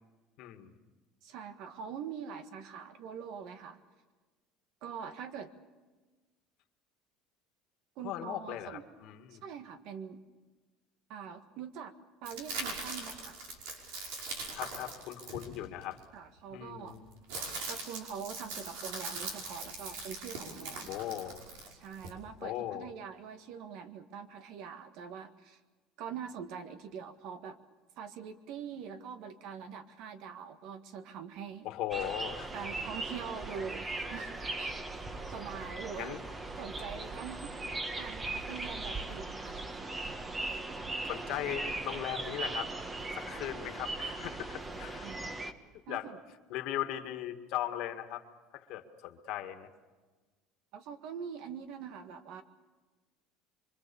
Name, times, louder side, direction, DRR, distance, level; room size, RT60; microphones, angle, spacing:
voice 1, 0.4-0.7 8.0-9.4 14.5-16.0 16.5-17.1 20.9-21.4 22.4-22.9 31.6-32.5 36.0-36.2 41.1-42.7 43.1-45.1 45.9-46.1 46.5-48.2 48.5-49.7, left 12 dB, 65° left, 7 dB, 1.9 m, -38 dB
voice 2, 1.2-3.8 4.8-5.5 8.0-8.8 9.3-10.2 11.1-11.9 12.2-13.4 16.1-17.0 17.7-20.9 21.7-25.6 26.0-27.6 28.0-31.7 32.5-34.8 35.3-36.2 36.6-37.5 38.0-39.5 45.0-45.5 45.9-46.2 50.7-52.4, right 7 dB, 65° right, 9 dB, 1.7 m, -44 dB
sound 1, 12.2-16.0 16.9-22.1, right 3 dB, 90° right, 5.3 m, -41 dB
sound 2, 31.9-45.5, right 2 dB, 20° right, 1.5 m, -39 dB
25.0 x 24.5 x 7.1 m, 1.3 s
cardioid pair, 125°, 0 cm